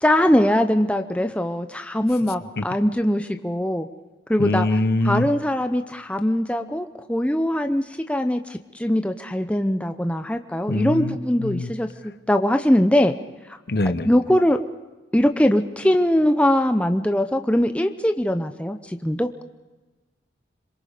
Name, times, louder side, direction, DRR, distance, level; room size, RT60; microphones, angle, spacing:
voice 1, 0.0-3.9 4.3-4.7 5.0-13.1 14.0-14.6 15.1-19.4, left 1 dB, 5° left, 7 dB, 0.7 m, -21 dB
voice 2, 4.4-5.2 10.7-11.7 13.7-14.1, left 2 dB, 55° left, 12 dB, 0.9 m, -23 dB
26.0 x 22.5 x 5.1 m, 1.2 s
head